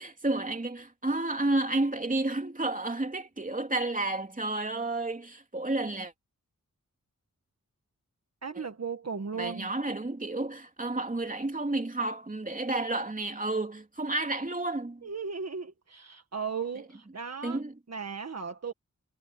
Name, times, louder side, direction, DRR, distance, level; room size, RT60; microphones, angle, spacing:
voice 1, 0.0-6.1 8.6-8.7 9.3-15.0 17.4-17.7, right 2 dB, 25° right, 3.2 m, -31 dB
voice 2, 8.4-9.7 15.0-17.6 17.9-18.7, right 5 dB, 55° right, 1.7 m, -36 dB
wide cardioid pair, 95°, 31 cm